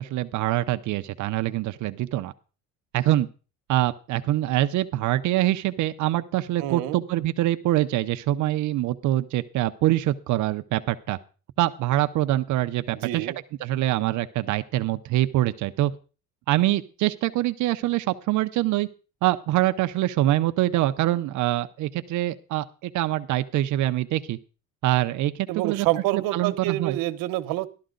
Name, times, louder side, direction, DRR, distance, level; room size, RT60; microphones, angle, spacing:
voice 1, 0.0-2.3 2.9-3.3 3.7-11.2 11.6-13.3 13.6-15.9 16.5-18.9 19.2-24.4 24.8-25.9 26.1-27.0, right 15 dB, 60° right, 10 dB, 0.7 m, -24 dB
voice 2, 6.6-7.1 12.9-13.4 25.5-27.7, right 16 dB, 85° right, 10 dB, 1.1 m, -27 dB
12.5 x 12.5 x 3.9 m, 0.35 s
cardioid pair, 160°, 34 cm